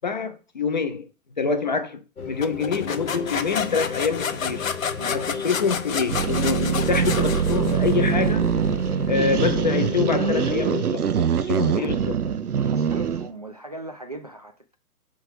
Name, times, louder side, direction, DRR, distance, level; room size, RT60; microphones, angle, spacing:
voice 1, 0.0-1.1 1.4-4.7 5.0-8.5 9.1-11.1 11.4-12.1, left 5 dB, 30° left, 0.5 m, -26 dB
sound 1, 2.2-10.8, left 5 dB, 85° left, 1.1 m, -34 dB
sound 2, 2.4-8.1, left 7 dB, 65° left, 0.8 m, -30 dB
sound 3, 6.1-13.3, right 7 dB, 90° right, 0.6 m, -23 dB
voice 2, 11.6-11.9 12.6-14.7, right 1 dB, 30° right, 0.4 m, -39 dB
6.3 x 3.5 x 4.7 m
figure-of-eight pair, 130°, 44 cm